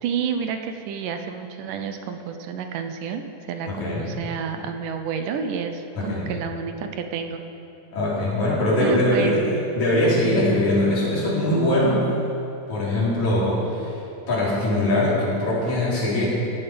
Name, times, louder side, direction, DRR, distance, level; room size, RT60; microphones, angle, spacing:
voice 1, 0.0-7.4 8.8-9.4, right 6 dB, 80° right, 6 dB, 2.3 m, -30 dB
voice 2, 3.7-4.1 6.0-6.3 7.9-12.0 12.7-13.9 14.3-16.3, left 1 dB, 60° left, -7 dB, 4.9 m, -22 dB
16.0 x 11.5 x 5.1 m, 2.9 s
omnidirectional pair, 3.8 m